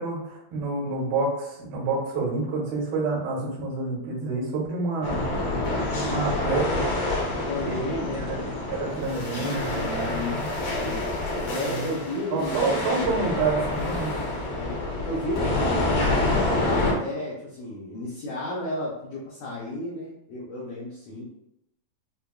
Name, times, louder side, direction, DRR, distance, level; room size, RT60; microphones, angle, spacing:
voice 1, 0.0-5.2 5.9-6.8 7.6-8.4 8.7-10.5 11.6-11.9 12.3-14.2, right 3 dB, 75° right, -6 dB, 3.0 m, -28 dB
sound 1, 5.0-16.9, left 2 dB, 65° left, 2.0 m, -27 dB
voice 2, 7.4-8.4 9.8-12.6 14.5-21.2, left 1 dB, 90° left, -6 dB, 1.7 m, -33 dB
6.7 x 2.3 x 2.2 m, 0.83 s
omnidirectional pair, 4.4 m